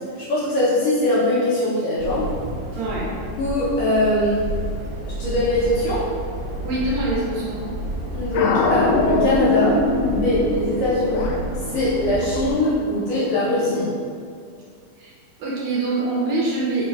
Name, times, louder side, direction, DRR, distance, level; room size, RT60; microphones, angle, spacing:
voice 1, 0.0-2.3 3.4-4.4 5.0-6.0 8.1-9.8 10.1-11.3 11.7-13.8, left 1 dB, 75° left, -9 dB, 1.5 m, -21 dB
sound 1, 2.0-12.6, right 1 dB, 45° right, 1.4 m, -31 dB
voice 2, 2.8-3.1 6.6-7.6 15.0-15.1 15.4-16.9, right 2 dB, 75° right, -5 dB, 1.8 m, -24 dB
sound 2, 8.3-13.9, left 3 dB, 90° left, 2.1 m, -24 dB
4.8 x 4.3 x 2.3 m, 2.2 s
omnidirectional pair, 3.5 m